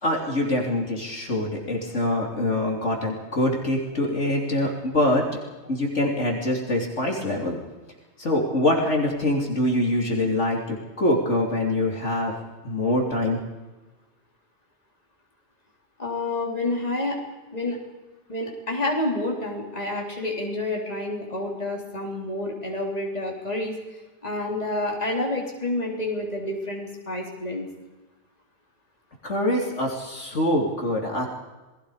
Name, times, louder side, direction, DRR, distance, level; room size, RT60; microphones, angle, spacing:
voice 1, 0.0-5.2 5.7-7.6 8.2-12.3 12.6-13.4 29.2-31.3, left 1 dB, 65° left, 0 dB, 3.6 m, -24 dB
voice 2, 16.0-17.2 17.5-17.8 18.3-23.7 24.2-27.6, left 2 dB, 30° left, -1 dB, 4.1 m, -28 dB
28.5 x 21.0 x 5.0 m, 1.2 s
omnidirectional pair, 1.3 m